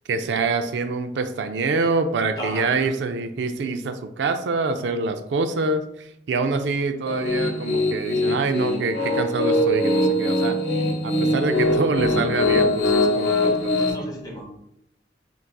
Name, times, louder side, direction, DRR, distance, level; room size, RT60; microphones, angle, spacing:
voice 1, 0.1-10.6 11.0-13.9, right 3 dB, 75° right, 8 dB, 0.4 m, -25 dB
voice 2, 2.4-2.9 13.5-14.5, equal, 20° left, -2 dB, 1.3 m, -35 dB
Piano, 7.1-13.9, left 1 dB, 75° left, 1.2 m, -22 dB
4.6 x 4.0 x 2.2 m, 0.77 s
head